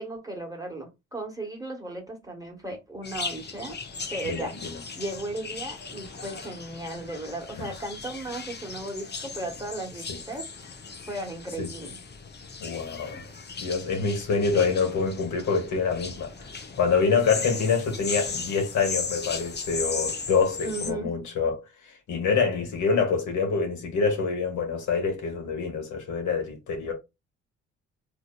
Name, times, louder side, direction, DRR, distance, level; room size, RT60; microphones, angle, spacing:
voice 1, 0.0-3.8 4.1-4.5 5.0-10.5 11.1-12.0 14.5-14.8 20.6-21.1, right 2 dB, 10° right, 1.5 m, -36 dB
sound 1, 3.0-20.9, left 4 dB, 30° left, 0.8 m, -37 dB
voice 2, 4.2-4.8 7.6-7.7 10.1-10.2 11.6-11.7 12.6-13.2 13.6-16.5 16.8-26.9, left 5 dB, 65° left, 1.4 m, -26 dB
3.6 x 2.8 x 2.3 m
hypercardioid pair, 50°, 32 cm